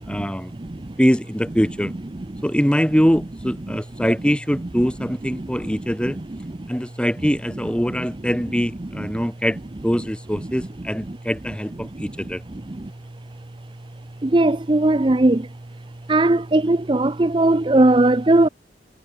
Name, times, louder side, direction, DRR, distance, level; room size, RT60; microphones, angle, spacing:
voice 1, 0.1-0.5 1.0-1.9 2.4-6.2 6.7-9.6 9.8-12.4, equal, 5° left, 2.6 m, -22 dB
voice 2, 14.2-15.5 16.1-18.5, right 2 dB, 25° right, 0.6 m, -18 dB
head